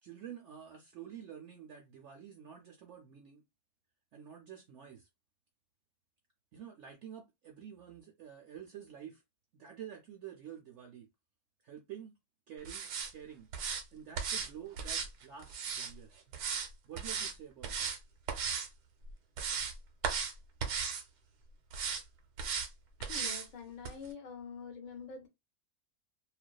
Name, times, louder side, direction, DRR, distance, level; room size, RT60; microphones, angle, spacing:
voice 1, 0.0-3.4 4.1-5.1 6.5-9.2 9.5-11.1 11.6-12.1 12.5-13.5 13.9-16.2 16.8-17.9, right 9 dB, 65° right, 0.7 m, -49 dB
sound 1, 12.7-13.1 13.5-13.8 14.2-14.5 14.8-15.9 16.3-16.7 17.0-17.3 17.6-18.0 18.3-18.7 19.1-19.7 20.0-20.3 20.6-21.0 21.7-22.0 22.4-22.7 23.0-23.5 23.8-23.9, right 6 dB, 90° right, 1.1 m, -36 dB
voice 2, 23.0-25.3, left 5 dB, 65° left, 0.4 m, -46 dB
2.4 x 2.3 x 2.2 m
omnidirectional pair, 1.6 m